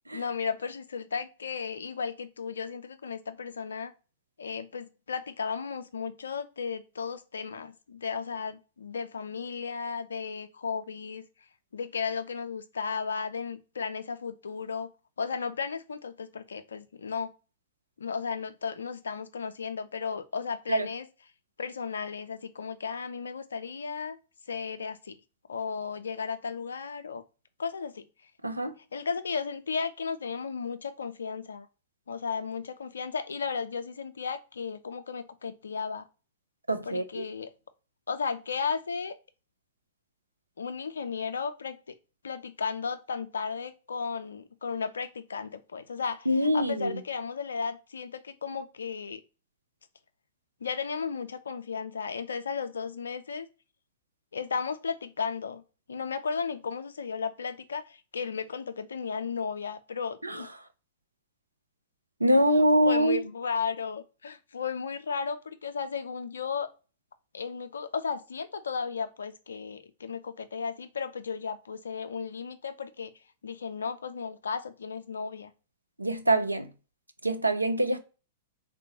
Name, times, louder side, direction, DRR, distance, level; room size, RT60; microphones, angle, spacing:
voice 1, 0.1-3.9 4.4-11.2 11.7-14.9 15.2-17.3 18.0-21.1 21.6-24.2 24.5-25.2 25.5-27.2 27.6-28.0 28.9-31.7 32.1-36.0 36.8-37.5 38.1-39.2 40.6-41.9 42.2-46.3 46.5-49.2 50.6-53.5 54.3-55.6 55.9-60.5 62.3-66.7 67.3-73.1 73.4-75.5, left 5 dB, 70° left, 0.4 m, -34 dB
voice 2, 28.4-28.7 36.7-37.2 46.3-47.0 60.2-60.4 62.2-63.2 76.0-76.7 77.2-78.0, right 1 dB, 85° right, 0.4 m, -24 dB
3.6 x 2.2 x 2.6 m
figure-of-eight pair, 100°, 0 cm